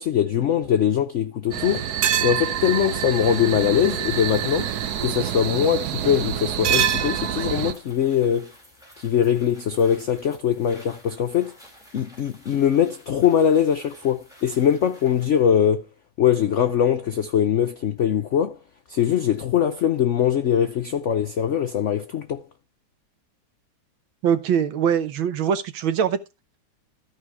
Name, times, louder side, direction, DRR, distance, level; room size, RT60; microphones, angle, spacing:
voice 1, 0.0-1.9 2.2-4.7 5.0-8.5 9.0-11.6 11.9-15.9 16.2-18.6 18.9-22.4, left 9 dB, 80° left, 0.6 m, -22 dB
sound 1, 1.5-7.7, right 10 dB, 65° right, 1.1 m, -26 dB
sound 2, 2.5-15.5, equal, ahead, 4.4 m, -51 dB
voice 2, 24.2-26.2, right 8 dB, 90° right, 1.8 m, -22 dB
13.5 x 5.0 x 4.8 m
omnidirectional pair, 2.1 m